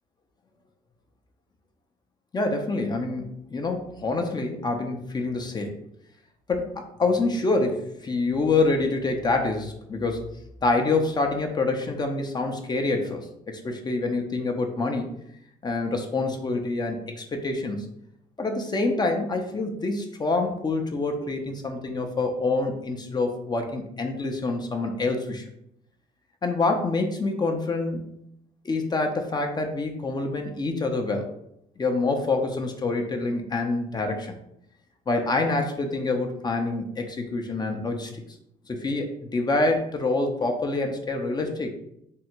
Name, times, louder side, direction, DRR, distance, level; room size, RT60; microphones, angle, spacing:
voice 1, 2.3-5.8 6.5-10.3 10.6-15.1 15.6-17.9 18.4-25.4 26.4-28.0 28.6-31.3 31.8-34.3 35.1-38.1 38.7-41.7, left 3 dB, 25° left, 4 dB, 0.5 m, -26 dB
3.6 x 2.1 x 4.3 m, 0.76 s
cardioid pair, 110°, 17 cm